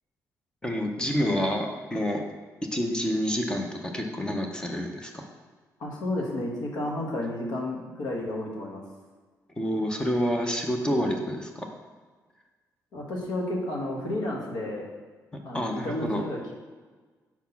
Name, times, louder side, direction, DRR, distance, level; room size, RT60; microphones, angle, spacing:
voice 1, 0.6-2.2 2.6-5.3 9.6-11.7 15.3-16.2, equal, 10° left, 3 dB, 0.5 m, -28 dB
voice 2, 5.8-8.8 12.9-14.9 15.4-16.5, left 1 dB, 85° left, -1 dB, 1.2 m, -32 dB
4.6 x 4.1 x 5.6 m, 1.4 s
cardioid pair, 170°, 7 cm